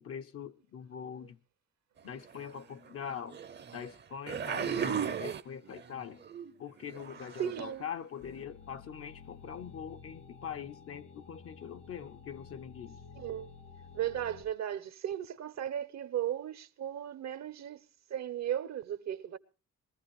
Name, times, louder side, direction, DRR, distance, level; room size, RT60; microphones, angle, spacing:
voice 1, 0.0-1.4 2.0-3.4 3.7-6.2 6.6-13.0, left 8 dB, 50° left, 0.6 m, -43 dB
sound 1, 2.4-2.5 3.3-3.9 4.3-5.9 6.2-6.5 6.9-7.6 8.3-8.4, right 7 dB, 35° right, 0.7 m, -36 dB
voice 2, 7.4-7.9 13.2-13.6 13.9-17.8 18.1-19.4, right 10 dB, 60° right, 0.9 m, -36 dB
sound 2, 8.2-14.4, left 5 dB, 70° left, 2.2 m, -52 dB
21.5 x 14.5 x 3.1 m
cardioid pair, 130°, 30 cm